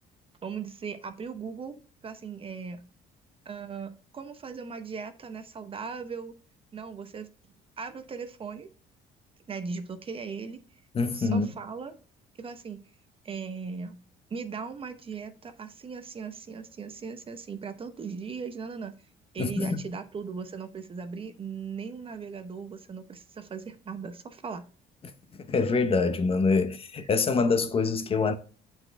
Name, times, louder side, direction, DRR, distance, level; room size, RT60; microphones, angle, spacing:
voice 1, 0.4-1.7 2.0-2.8 3.4-6.3 6.7-7.3 7.8-8.7 9.5-10.6 11.1-12.0 12.4-12.8 13.2-13.9 14.3-19.0 19.3-24.7, right 5 dB, 35° right, 0.8 m, -38 dB
voice 2, 10.9-11.5 19.4-19.8 25.4-28.3, left 4 dB, 35° left, 0.8 m, -25 dB
7.8 x 4.4 x 3.4 m
cardioid pair, 110°, 17 cm